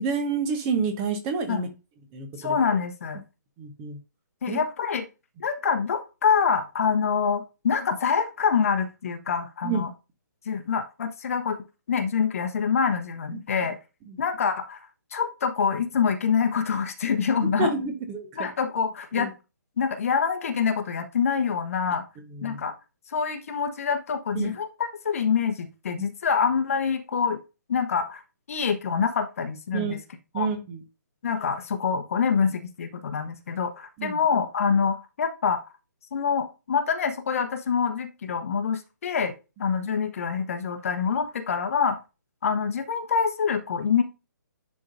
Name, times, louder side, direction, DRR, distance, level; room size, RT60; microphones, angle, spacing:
voice 1, 0.0-1.7 2.1-2.5 3.6-4.0 4.5-4.6 9.6-9.8 14.1-14.2 17.6-18.5 19.2-19.3 22.3-22.6 24.3-24.5 26.0-26.1 29.7-30.0 30.3-30.8 34.0-34.2, right 5 dB, 20° right, 7 dB, 1.1 m, -29 dB
voice 2, 2.4-3.2 4.4-5.1 5.4-9.9 10.5-11.6 11.9-13.8 14.2-14.8 15.1-17.7 18.4-19.3 19.8-22.0 22.4-22.7 23.1-27.4 27.7-28.2 28.5-30.0 30.3-30.5 31.2-35.6 36.1-39.3 39.6-42.0 42.4-44.0, left 6 dB, 45° left, 7 dB, 1.1 m, -26 dB
11.0 x 3.8 x 2.7 m, 0.29 s
figure-of-eight pair, 135°, 11 cm